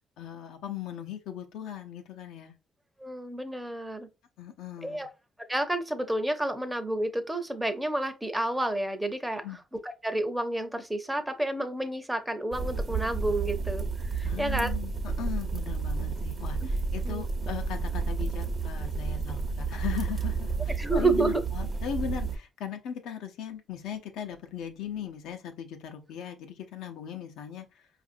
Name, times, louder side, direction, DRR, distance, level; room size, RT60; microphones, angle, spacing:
voice 1, 0.2-2.5 4.4-5.1 9.4-9.6 14.2-27.9, left 8 dB, 90° left, 0.6 m, -38 dB
voice 2, 3.0-4.1 4.8-5.1 5.5-9.4 9.7-14.7 16.6-16.7 17.0-17.2 20.8-21.4, right 2 dB, 10° right, 0.6 m, -30 dB
sound 1, 12.5-22.4, right 4 dB, 40° right, 0.7 m, -31 dB
4.9 x 2.5 x 2.5 m
cardioid pair, 90°, 0 cm